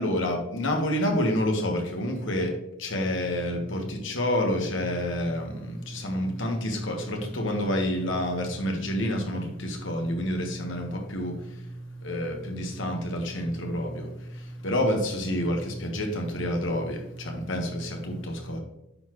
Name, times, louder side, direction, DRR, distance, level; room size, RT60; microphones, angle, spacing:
voice 1, 0.0-18.6, left 1 dB, 65° left, 2 dB, 1.3 m, -29 dB
9.3 x 4.1 x 3.0 m, 0.89 s
head